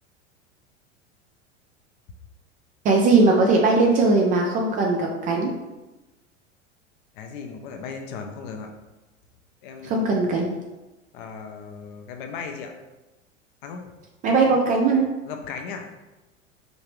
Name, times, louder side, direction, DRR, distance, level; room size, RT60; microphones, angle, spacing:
voice 1, 2.8-5.5 9.8-10.5 14.2-15.1, right 3 dB, 20° right, 0 dB, 0.4 m, -19 dB
voice 2, 7.2-8.7 9.6-10.3 11.1-12.7 13.6-13.8 15.3-15.9, left 5 dB, 40° left, 4 dB, 0.6 m, -36 dB
5.2 x 2.8 x 3.0 m, 1.1 s
figure-of-eight pair, 85°, 37 cm